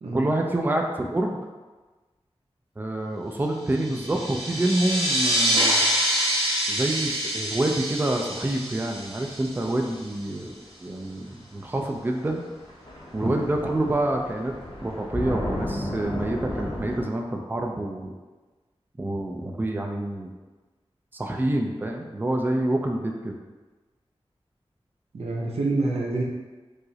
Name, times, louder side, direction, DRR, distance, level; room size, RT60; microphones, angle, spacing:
voice 1, 0.1-1.4 2.8-5.8 6.7-10.5 10.8-12.4 13.1-14.5 14.8-18.1 19.0-20.3 21.1-23.4, right 1 dB, 20° right, 2 dB, 0.4 m, -27 dB
sound 1, 3.7-10.0, right 1 dB, 60° right, 0.8 m, -26 dB
sound 2, 10.9-11.0 12.2-12.3 12.5-17.0, left 1 dB, 55° left, 0.8 m, -33 dB
voice 2, 25.1-26.2, right 2 dB, 90° right, -2 dB, 0.6 m, -26 dB
4.7 x 2.0 x 2.7 m, 1.3 s
wide cardioid pair, 75°, 10 cm